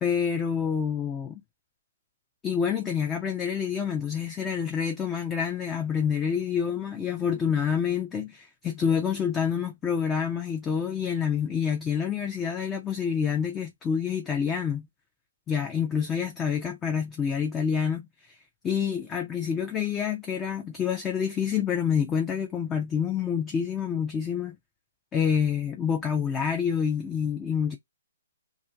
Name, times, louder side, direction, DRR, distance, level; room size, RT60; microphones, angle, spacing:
voice 1, 0.0-1.4 2.4-14.9 15.5-18.4 18.6-24.6 25.1-27.8, left 7 dB, 15° left, 0.4 m, -27 dB
2.5 x 2.3 x 2.7 m
figure-of-eight pair, 130°, 0 cm